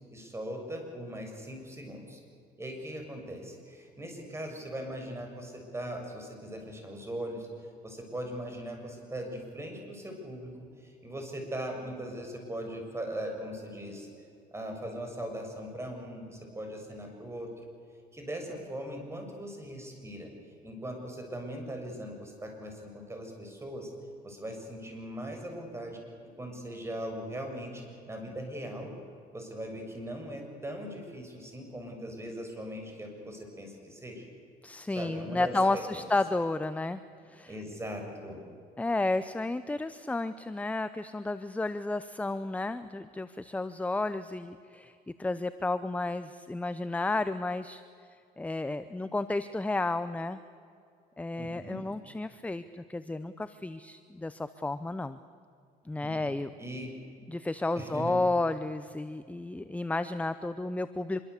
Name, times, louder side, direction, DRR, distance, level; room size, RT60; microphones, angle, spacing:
voice 1, 0.1-2.2 2.6-7.5 7.8-14.1 14.5-17.5 18.1-20.3 20.6-23.9 24.2-26.0 26.4-27.8 28.1-28.9 29.3-34.2 35.0-36.0 37.5-38.4 51.4-51.9 56.0-56.3 56.6-56.9 57.7-58.2, equal, 15° right, 3 dB, 7.0 m, -40 dB
voice 2, 34.6-37.0 37.3-37.5 38.8-44.9 45.2-47.8 48.4-50.4 51.2-55.2 55.9-56.5 57.3-61.2, left 2 dB, 10° left, 12 dB, 0.8 m, -32 dB
26.0 x 23.5 x 8.4 m, 2.4 s
cardioid pair, 110°, 17 cm